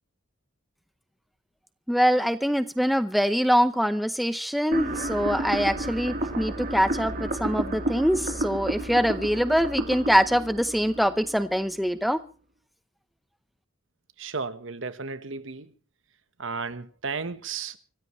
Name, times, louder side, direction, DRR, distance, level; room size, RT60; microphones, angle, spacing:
voice 1, 1.9-12.2, equal, ahead, 0.7 m, -24 dB
sound 1, 4.7-11.7, right 1 dB, 45° right, 3.4 m, -31 dB
voice 2, 14.2-15.7 16.4-17.8, right 4 dB, 65° right, 1.2 m, -34 dB
25.5 x 15.5 x 3.1 m
head